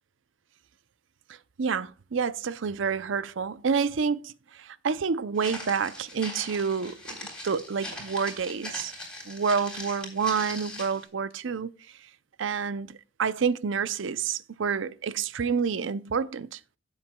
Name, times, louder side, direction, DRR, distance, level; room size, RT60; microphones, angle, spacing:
voice 1, 1.6-8.9 9.3-11.7 12.4-16.6, right 6 dB, 75° right, 0.5 m, -28 dB
Walk footsteps, 5.4-11.0, left 1 dB, 5° left, 3.5 m, -40 dB
16.0 x 7.1 x 2.2 m
head